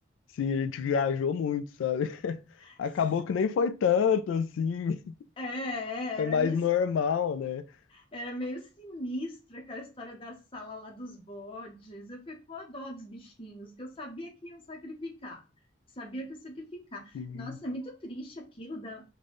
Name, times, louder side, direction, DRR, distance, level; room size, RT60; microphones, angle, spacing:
voice 1, 0.4-2.4 2.8-5.2 6.2-7.7 17.1-17.6, left 7 dB, 80° left, 0.3 m, -28 dB
voice 2, 5.4-6.6 7.9-15.4 16.0-19.2, left 1 dB, 30° left, 0.7 m, -39 dB
3.8 x 2.2 x 3.4 m
head